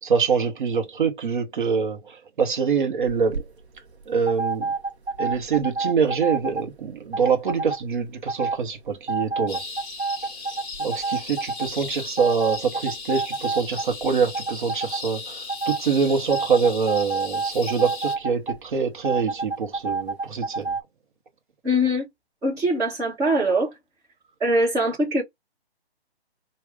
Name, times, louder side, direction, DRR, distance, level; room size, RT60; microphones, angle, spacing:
voice 1, 0.0-3.4 4.1-4.7 5.2-9.7 10.8-20.7, right 6 dB, 50° right, 0.9 m, -25 dB
sound 1, 3.0-3.4 4.3-6.6 7.1-7.8 8.3-8.6 9.1-11.7 12.2-14.0 14.3-15.0 15.5-15.8 16.3-18.6 19.0-20.8, right 4 dB, 85° right, 0.9 m, -28 dB
sound 2, 9.5-18.1, left 4 dB, 20° left, 1.2 m, -37 dB
voice 2, 21.6-22.0 22.4-23.7 24.4-25.2, equal, 10° right, 1.3 m, -22 dB
4.6 x 2.3 x 3.5 m
hypercardioid pair, 150°, 32 cm